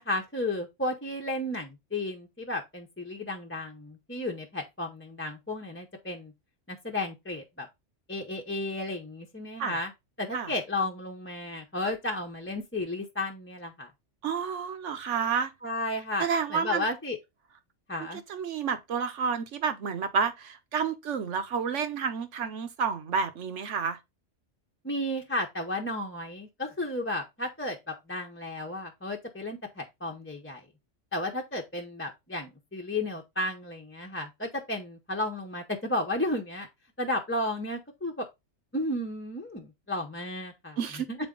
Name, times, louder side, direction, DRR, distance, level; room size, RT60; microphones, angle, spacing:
voice 1, 0.0-6.3 6.7-7.7 8.1-9.9 10.2-13.9 15.6-17.2 17.9-18.2 24.8-30.6 31.1-36.7 37.0-38.2 38.7-40.8 41.1-41.2, left 1 dB, 10° left, 0.8 m, -33 dB
voice 2, 14.2-15.5 16.2-16.8 18.0-24.0 40.8-41.1, right 6 dB, 75° right, 1.2 m, -30 dB
7.3 x 4.2 x 3.8 m
omnidirectional pair, 1.3 m